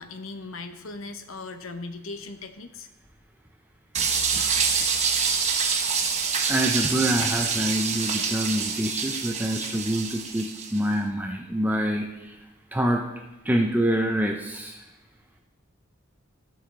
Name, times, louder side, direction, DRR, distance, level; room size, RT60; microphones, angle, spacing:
voice 1, 0.0-2.9, left 3 dB, 80° left, 8 dB, 0.9 m, -38 dB
sound 1, 3.9-10.8, right 5 dB, 35° right, 1.0 m, -26 dB
voice 2, 6.5-12.4 12.7-13.0 13.4-14.9, right 1 dB, 10° right, 2 dB, 0.6 m, -26 dB
15.0 x 6.5 x 3.8 m, 1.0 s
head